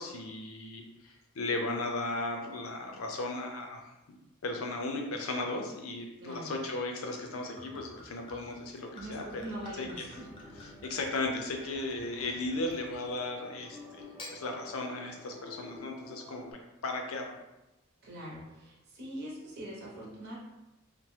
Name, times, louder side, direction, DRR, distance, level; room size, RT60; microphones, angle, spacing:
voice 1, 0.0-3.8 4.1-4.2 4.4-9.4 9.8-10.1 10.8-16.4 16.8-17.4, left 2 dB, 70° left, 2 dB, 0.5 m, -36 dB
voice 2, 6.2-6.6 8.9-10.3 18.0-20.4, right 1 dB, 50° right, -5 dB, 0.8 m, -42 dB
Gurgling / Chink clink / Liquid, 7.2-13.3 14.0-14.4, left 1 dB, 25° left, 0.6 m, -51 dB
sound 1, 9.8-16.5, left 1 dB, 10° right, 0.8 m, -51 dB
2.9 x 2.1 x 3.1 m, 0.97 s
head